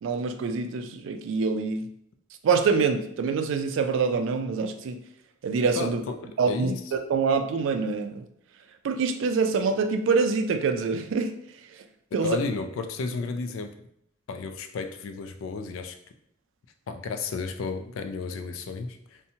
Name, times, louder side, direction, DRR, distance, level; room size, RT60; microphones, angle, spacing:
voice 1, 0.0-1.9 2.4-5.0 5.4-6.0 6.4-8.2 8.8-11.3 12.1-12.4, right 5 dB, 70° right, 7 dB, 0.3 m, -25 dB
voice 2, 5.8-6.8 12.2-13.7 14.3-16.0 16.9-19.2, left 4 dB, 90° left, 8 dB, 0.3 m, -32 dB
2.7 x 2.1 x 2.7 m, 0.72 s
head